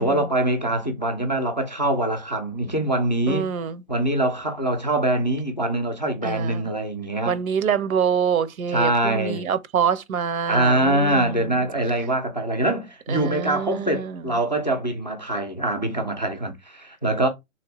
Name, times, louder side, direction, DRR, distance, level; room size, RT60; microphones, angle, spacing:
voice 1, 0.0-3.5 3.9-7.4 8.7-9.5 10.5-17.3, right 1 dB, 35° left, 0.4 m, -24 dB
voice 2, 3.3-3.8 6.2-6.6 7.2-11.5 13.1-14.2, right 7 dB, 80° right, 0.7 m, -25 dB
3.3 x 2.7 x 2.9 m
hypercardioid pair, 180°, 42 cm